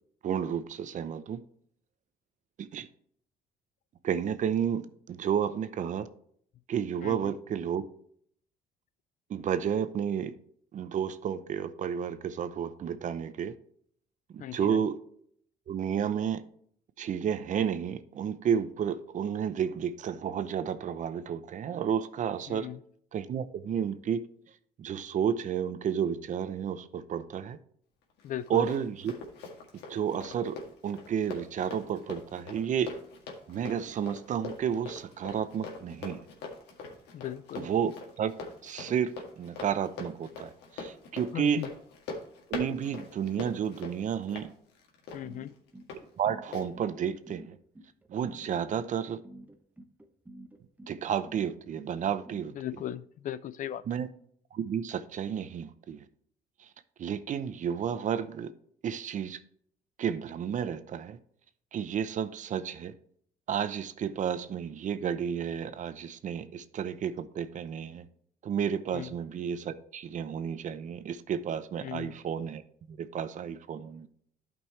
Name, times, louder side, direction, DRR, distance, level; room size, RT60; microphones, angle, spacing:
voice 1, 0.2-1.4 2.6-2.9 4.0-6.1 6.7-7.8 9.3-10.3 10.7-13.5 14.3-15.0 15.7-16.4 17.0-22.7 23.1-24.2 24.8-27.6 28.5-29.2 29.7-30.6 30.8-33.0 33.5-36.2 37.6-38.3 38.6-41.7 42.5-44.5 46.2-47.6 48.1-49.2 50.9-52.5 53.9-54.1 54.5-56.1 56.6-56.7 57.0-58.5 58.8-59.4 60.0-61.2 61.7-62.9 63.5-68.0 68.4-72.6 72.9-74.1, right 8 dB, 50° right, 0.7 m, -31 dB
Run, 28.2-46.0 46.5-46.7, left 3 dB, 80° left, 1.9 m, -43 dB
voice 2, 28.2-28.6 37.1-37.7 41.3-41.7 45.1-45.5 52.6-53.8 68.9-69.1 71.8-72.1, left 11 dB, 50° left, 0.4 m, -37 dB
sound 1, 45.2-52.9, right 1 dB, 10° right, 0.8 m, -50 dB
12.0 x 5.3 x 3.2 m
cardioid pair, 110°, 17 cm